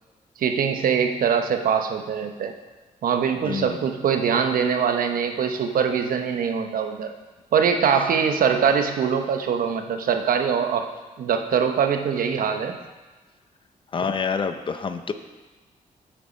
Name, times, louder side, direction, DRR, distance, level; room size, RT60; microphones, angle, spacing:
voice 1, 0.4-2.5 3.0-7.1 7.5-10.9 11.2-12.8, right 7 dB, 85° right, 6 dB, 0.9 m, -23 dB
voice 2, 3.4-3.8 13.9-15.1, left 5 dB, 35° left, 9 dB, 0.6 m, -27 dB
8.9 x 8.1 x 5.2 m, 1.2 s
wide cardioid pair, 170°, 14 cm